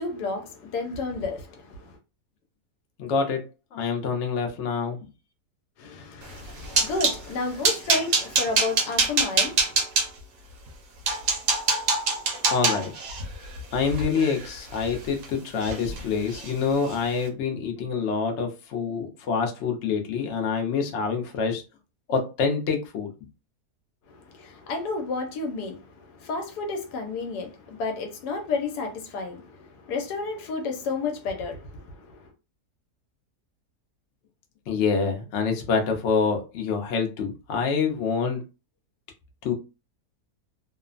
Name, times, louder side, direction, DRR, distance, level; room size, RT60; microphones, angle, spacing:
voice 1, 0.0-2.0 5.8-9.8 24.1-32.3, left 3 dB, 85° left, 1.2 m, -31 dB
voice 2, 3.0-3.4 3.7-5.0 12.5-12.9 13.7-21.6 22.1-23.1 34.7-38.4 39.4-39.5, left 5 dB, 60° left, 0.8 m, -26 dB
sound 1, 6.3-7.2 7.6-10.1 10.7-10.8 11.1-15.3 15.6-16.0 16.3-16.5 16.9-17.1, right 4 dB, 65° right, 1.1 m, -25 dB
3.0 x 2.1 x 2.4 m
omnidirectional pair, 1.7 m